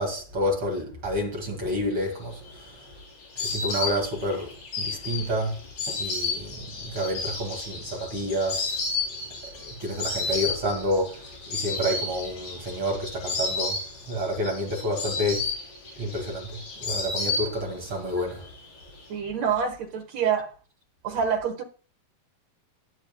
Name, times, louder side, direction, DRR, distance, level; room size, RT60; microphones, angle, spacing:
voice 1, 0.0-2.7 3.4-5.6 5.9-8.8 9.5-11.2 11.5-13.8 14.1-15.5 16.0-18.5, equal, 40° right, 2.4 m, -29 dB
Insect, 2.2-17.9 18.2-19.0, left 3 dB, 75° left, 5.8 m, -32 dB
voice 2, 19.1-20.5 21.0-21.6, right 7 dB, 65° right, 1.8 m, -26 dB
19.5 x 7.7 x 2.2 m
omnidirectional pair, 4.5 m